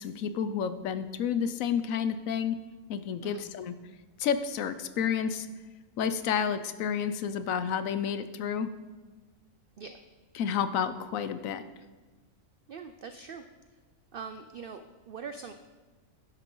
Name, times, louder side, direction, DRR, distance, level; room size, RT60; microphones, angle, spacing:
voice 1, 0.0-2.6 2.9-3.7 4.2-5.5 6.0-8.7 10.4-11.6, left 7 dB, 80° left, 12 dB, 1.1 m, -30 dB
voice 2, 12.7-13.4 14.1-15.5, right 5 dB, 60° right, 8 dB, 0.6 m, -42 dB
11.0 x 11.0 x 3.8 m, 1.3 s
omnidirectional pair, 1.4 m